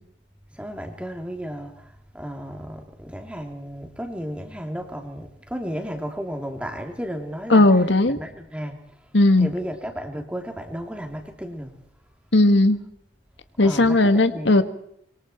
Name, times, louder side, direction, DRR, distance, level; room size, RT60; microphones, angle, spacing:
voice 1, 0.5-7.7 8.0-8.8 9.4-11.7 13.6-14.5, equal, 5° right, 4 dB, 3.2 m, -33 dB
voice 2, 7.5-8.2 9.1-9.5 12.3-12.8 13.6-14.6, left 2 dB, 70° left, 9 dB, 1.6 m, -16 dB
26.0 x 24.0 x 4.6 m, 0.69 s
head